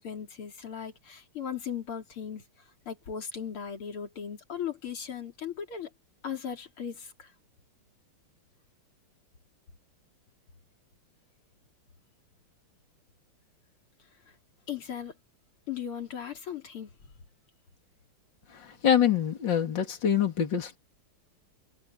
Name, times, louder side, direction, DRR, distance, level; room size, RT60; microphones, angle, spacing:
voice 1, 0.0-2.4 2.9-5.9 6.2-7.3 14.7-15.1 15.7-16.9, left 8 dB, 90° left, 3.9 m, -37 dB
voice 2, 18.5-20.8, left 9 dB, 60° left, 3.3 m, -25 dB
omnidirectional pair, 2.3 m